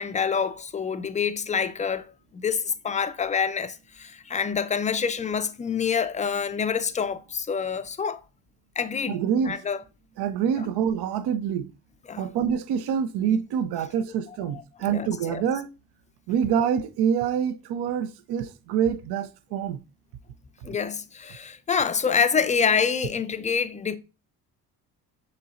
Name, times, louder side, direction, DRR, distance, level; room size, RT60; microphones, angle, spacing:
voice 1, 0.0-2.1 2.3-8.2 8.8-9.8 12.1-12.3 14.8-15.4 20.6-24.0, left 6 dB, 20° left, 0.4 m, -27 dB
voice 2, 9.1-9.6 10.2-11.7 12.2-15.7 16.3-19.8, right 8 dB, 65° right, 0.6 m, -26 dB
6.6 x 3.2 x 2.5 m
supercardioid pair, 65°, 43 cm